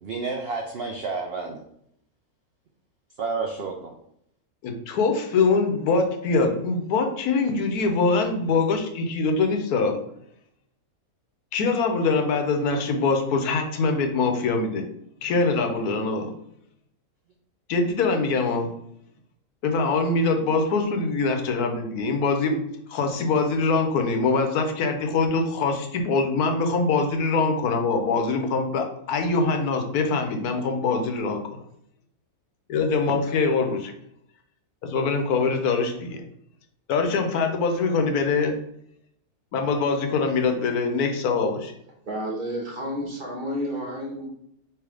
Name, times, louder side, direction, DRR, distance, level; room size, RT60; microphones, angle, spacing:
voice 1, 0.0-1.6 3.2-3.9, right 4 dB, 70° right, 2 dB, 0.6 m, -30 dB
voice 2, 4.6-10.0 11.5-14.9 15.2-16.3 17.7-18.7 19.6-22.6 22.9-31.6 32.7-33.9 34.8-36.2 36.9-38.6 39.5-41.7, left 4 dB, 75° left, 5 dB, 1.2 m, -23 dB
voice 3, 42.1-44.3, equal, 35° right, -2 dB, 1.1 m, -31 dB
3.4 x 3.2 x 4.7 m, 0.73 s
omnidirectional pair, 1.6 m